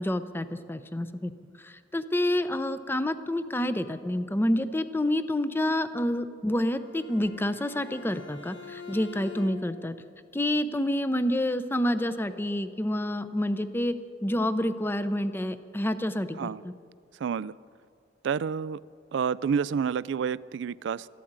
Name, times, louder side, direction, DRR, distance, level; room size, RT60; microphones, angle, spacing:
voice 1, 0.0-1.3 1.6-10.0 10.3-13.9 14.2-16.5, left 1 dB, 10° left, 12 dB, 0.6 m, -28 dB
Bowed string instrument, 6.5-9.9, left 6 dB, 80° left, 1.8 m, -45 dB
voice 2, 17.2-17.6 18.2-18.8 19.1-21.1, right 6 dB, 70° right, 20 dB, 0.3 m, -29 dB
13.0 x 12.5 x 8.8 m, 2.2 s
head